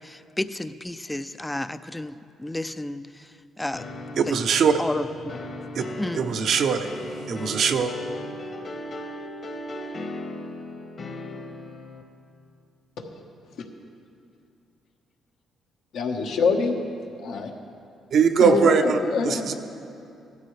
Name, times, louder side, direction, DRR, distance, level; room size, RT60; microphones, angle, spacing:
voice 1, 0.0-3.3 3.6-3.9 4.1-4.4 4.8-5.4 6.0-6.3, left 1 dB, 10° left, 12 dB, 0.4 m, -32 dB
sound 1, 3.7-12.0, left 1 dB, 45° left, 1.3 m, -37 dB
voice 2, 4.2-4.8 5.7-5.8 6.1-6.9 7.3-7.9 18.1-19.5, right 6 dB, 65° right, 7 dB, 0.7 m, -21 dB
voice 3, 13.0-13.6 15.9-16.7 17.2-17.5 18.4-19.5, left 4 dB, 75° left, 2 dB, 1.2 m, -26 dB
16.0 x 13.0 x 3.3 m, 2.6 s
cardioid pair, 90°, 0 cm